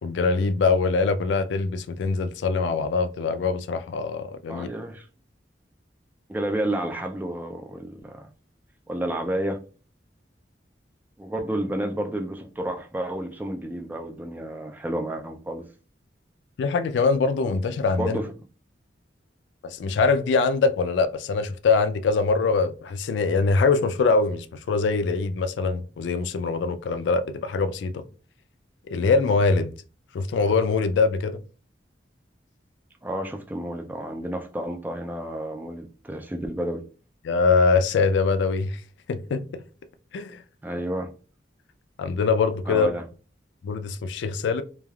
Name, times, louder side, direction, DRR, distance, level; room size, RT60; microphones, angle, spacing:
voice 1, 0.0-4.7 16.6-18.2 19.6-28.0 28.9-29.7 30.1-31.4 37.2-38.8 39.1-39.6 40.1-40.4 42.0-42.9 43.6-44.6, left 4 dB, 80° left, 0.3 m, -23 dB
voice 2, 4.5-5.0 6.3-8.3 8.9-9.6 11.2-15.7 17.9-18.3 33.0-36.8 40.6-41.1 42.7-43.0, right 1 dB, 10° right, 0.3 m, -30 dB
3.2 x 2.3 x 2.2 m
head